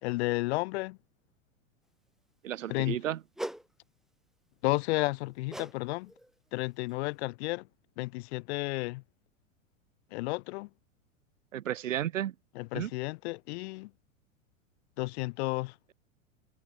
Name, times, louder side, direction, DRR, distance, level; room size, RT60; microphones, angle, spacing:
voice 1, 0.0-1.0 2.7-3.0 4.6-6.1 6.5-7.6 8.0-9.0 10.1-10.7 12.6-13.9 15.0-15.7, left 23 dB, 50° left, 3.9 m, -32 dB
voice 2, 2.4-3.2 11.5-12.3 12.7-12.9, right 11 dB, 70° right, 2.0 m, -33 dB
Swing Whoosh, 3.4-3.7 5.5-5.8 6.1-6.3 6.9-7.0, equal, ahead, 3.4 m, -39 dB
figure-of-eight pair, 95°, 41 cm